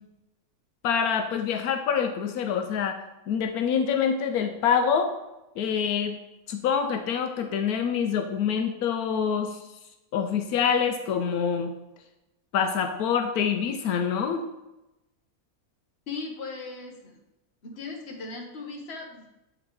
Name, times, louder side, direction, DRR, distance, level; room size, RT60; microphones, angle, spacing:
voice 1, 0.8-3.0 3.3-5.1 5.6-6.2 6.5-9.6 10.1-11.7 12.5-14.4, left 7 dB, 85° left, 6 dB, 1.1 m, -26 dB
voice 2, 16.1-17.2 17.6-19.3, left 4 dB, 45° left, 2 dB, 1.3 m, -38 dB
7.9 x 3.7 x 4.6 m, 0.95 s
omnidirectional pair, 1.6 m